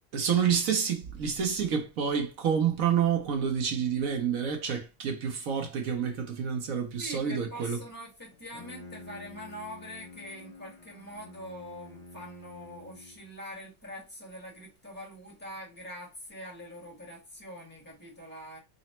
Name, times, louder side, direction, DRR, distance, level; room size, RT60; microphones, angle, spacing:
voice 1, 0.1-7.8, right 7 dB, 60° right, 1.0 m, -28 dB
voice 2, 7.0-18.6, equal, 10° left, 1.0 m, -44 dB
Bowed string instrument, 8.3-13.4, left 3 dB, 50° left, 1.2 m, -49 dB
4.0 x 2.0 x 4.1 m
omnidirectional pair, 1.9 m